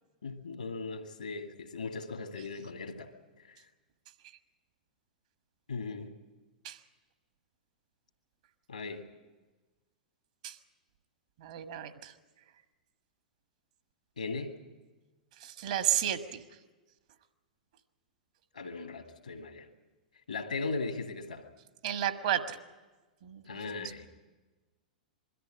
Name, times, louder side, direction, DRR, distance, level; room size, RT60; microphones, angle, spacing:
voice 1, 0.2-3.1 3.5-3.6 5.7-6.1 8.7-9.0 14.2-14.6 18.5-19.7 20.3-21.5 23.4-24.1, left 3 dB, 75° left, 6 dB, 2.0 m, -38 dB
voice 2, 11.4-12.1 15.4-16.4 21.8-22.4 23.2-23.4, right 11 dB, 55° right, 9 dB, 1.5 m, -32 dB
22.0 x 13.5 x 9.8 m, 1.2 s
figure-of-eight pair, 100°, 4 cm